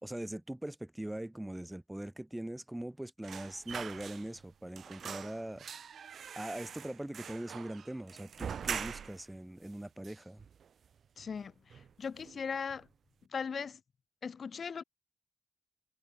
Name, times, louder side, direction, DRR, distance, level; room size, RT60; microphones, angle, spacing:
voice 1, 0.0-5.6 6.4-10.4, right 1 dB, 5° right, 1.3 m, -41 dB
sound 1, 3.2-4.5 4.7-9.3 9.6-9.7 10.0-10.9 11.2-11.4 11.7-12.4 12.7-12.9, right 7 dB, 55° right, 1.0 m, -43 dB
voice 2, 11.2-12.9 13.3-13.8 14.2-14.8, left 6 dB, 40° left, 0.5 m, -39 dB
wide cardioid pair, 155°, 0 cm